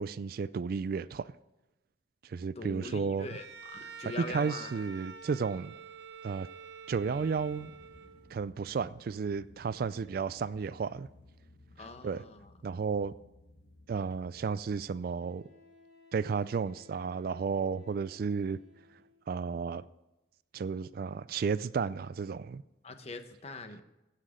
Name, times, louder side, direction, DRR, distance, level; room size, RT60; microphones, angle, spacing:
voice 1, 0.0-1.3 2.2-3.3 4.2-5.7 6.2-6.5 6.9-7.7 8.3-11.1 12.0-12.2 12.6-13.1 13.9-15.4 16.1-18.6 19.3-19.8 20.5-22.6, right 5 dB, 55° right, 0.3 m, -33 dB
voice 2, 2.6-3.5 3.7-4.8 11.8-12.5 22.8-23.8, left 3 dB, 35° left, 0.9 m, -42 dB
Bowed string instrument, 3.2-8.4, right 6 dB, 80° right, 0.9 m, -48 dB
sound 1, 6.9-14.8, left 1 dB, 75° left, 1.4 m, -58 dB
Wind instrument woodwind instrument, 15.2-19.3, left 3 dB, 40° right, 2.3 m, -60 dB
16.0 x 5.9 x 5.0 m
head